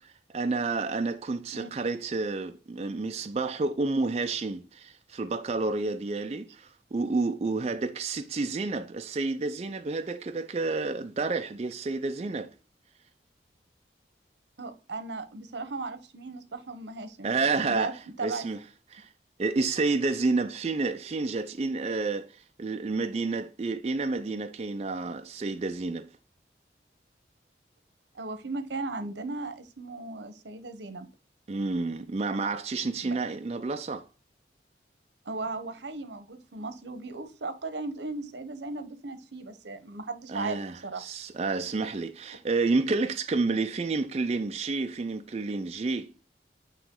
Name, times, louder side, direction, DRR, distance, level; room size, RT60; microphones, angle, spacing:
voice 1, 0.3-12.5 17.2-18.6 18.9-19.1 19.4-26.1 31.5-34.1 40.3-46.1, right 3 dB, 35° right, 0.4 m, -30 dB
voice 2, 14.6-17.3 17.7-17.9 18.2-18.5 28.1-31.1 33.0-33.2 35.2-41.0, right 3 dB, 85° right, 0.9 m, -36 dB
9.0 x 3.0 x 3.7 m
head